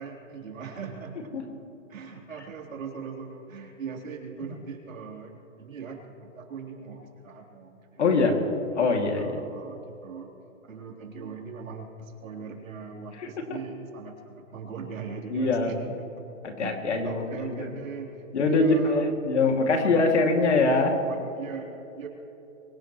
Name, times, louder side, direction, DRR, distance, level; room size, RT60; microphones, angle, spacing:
voice 1, 0.0-1.3 1.9-8.0 8.7-8.9 9.2-10.3 10.6-18.1 18.5-19.0 19.5-19.9 20.4-21.7 22.0-22.1, right 5 dB, 80° right, -1 dB, 3.8 m, -40 dB
voice 2, 8.0-8.4 8.7-9.4 13.1-13.6 15.3-15.9 16.4-17.8 18.3-21.0, left 3 dB, 60° left, 2 dB, 2.6 m, -24 dB
24.0 x 17.0 x 3.2 m, 2.8 s
hypercardioid pair, 175°, 40 cm